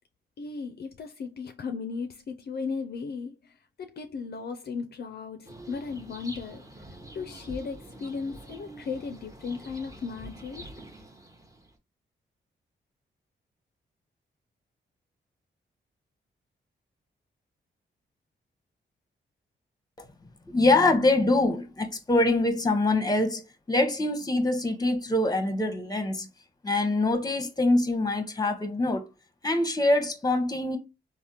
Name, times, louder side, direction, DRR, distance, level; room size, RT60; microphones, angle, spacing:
voice 1, 0.4-10.7, left 5 dB, 55° left, 0.4 m, -36 dB
sound 1, 5.5-11.8, right 1 dB, 15° right, 0.8 m, -46 dB
voice 2, 20.5-23.4 23.7-26.3 26.6-29.1 29.4-30.8, left 2 dB, 20° left, 0.8 m, -24 dB
3.4 x 2.1 x 2.7 m
cardioid pair, 60°, 20 cm